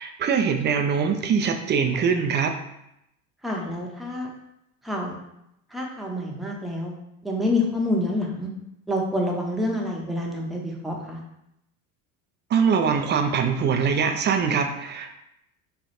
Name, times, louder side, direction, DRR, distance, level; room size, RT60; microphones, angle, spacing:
voice 1, 0.0-2.5 12.5-15.1, right 6 dB, 30° right, 6 dB, 0.3 m, -23 dB
voice 2, 3.4-4.3 4.8-5.1 5.7-6.9 7.2-8.5 8.9-11.2, left 1 dB, ahead, -2 dB, 0.7 m, -27 dB
3.1 x 2.3 x 4.2 m, 0.82 s
supercardioid pair, 90°, 42 cm